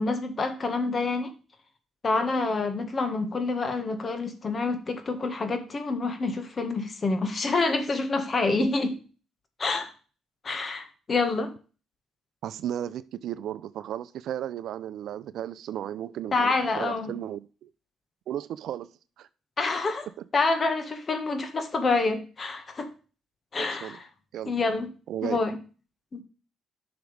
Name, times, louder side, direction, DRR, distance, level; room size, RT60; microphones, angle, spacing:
voice 1, 0.0-1.3 2.0-8.9 9.6-9.9 10.4-11.5 16.3-17.1 19.6-20.1 20.3-22.9 23.5-24.1 24.5-24.9 25.2-25.6 26.1-26.2, left 3 dB, 40° left, 1.7 m, -27 dB
voice 2, 12.4-17.7 18.3-18.9 19.2-19.3 23.6-24.0 24.3-24.5 25.1-25.4, right 11 dB, 75° right, 0.5 m, -34 dB
10.5 x 6.0 x 3.4 m
cardioid pair, 90°, 0 cm